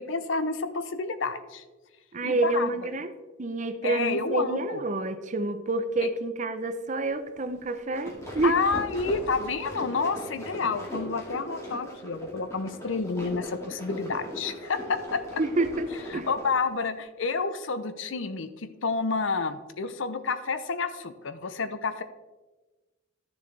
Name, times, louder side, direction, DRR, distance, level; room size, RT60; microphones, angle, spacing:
voice 1, 0.0-1.6 2.2-2.7 3.8-4.8 8.4-15.2 16.1-22.0, left 4 dB, 75° left, 11 dB, 0.6 m, -29 dB
voice 2, 2.1-3.1 3.4-8.6 15.4-15.9 16.1-16.3, right 2 dB, 40° right, 10 dB, 0.6 m, -28 dB
sound 1, 7.7-16.6, left 1 dB, 15° left, 2.0 m, -39 dB
12.5 x 7.0 x 3.3 m, 1.2 s
head